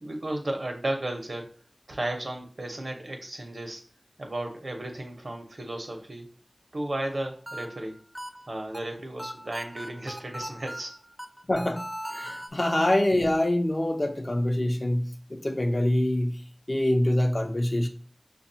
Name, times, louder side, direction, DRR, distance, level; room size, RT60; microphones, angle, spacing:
voice 1, 0.0-1.5 1.9-3.8 4.2-6.3 6.7-8.0 8.5-10.9, right 1 dB, 80° right, 0.8 m, -34 dB
sound 1, 7.1-12.5, equal, 5° right, 0.4 m, -39 dB
voice 2, 11.5-11.8 12.1-16.4 16.7-17.9, left 1 dB, 50° left, 0.6 m, -25 dB
5.9 x 2.3 x 2.7 m
wide cardioid pair, 50°, 0 cm